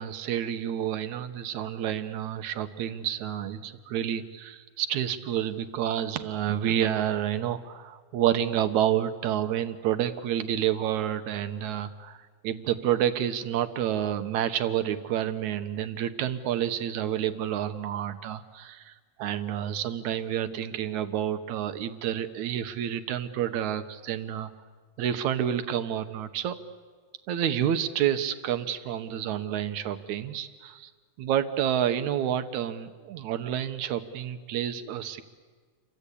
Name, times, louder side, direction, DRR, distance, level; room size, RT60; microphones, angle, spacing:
voice 1, 0.0-24.5 25.0-26.6 27.3-30.9 31.2-35.2, right 10 dB, 70° right, 9 dB, 2.4 m, -29 dB
29.0 x 24.0 x 8.5 m, 1.5 s
omnidirectional pair, 3.6 m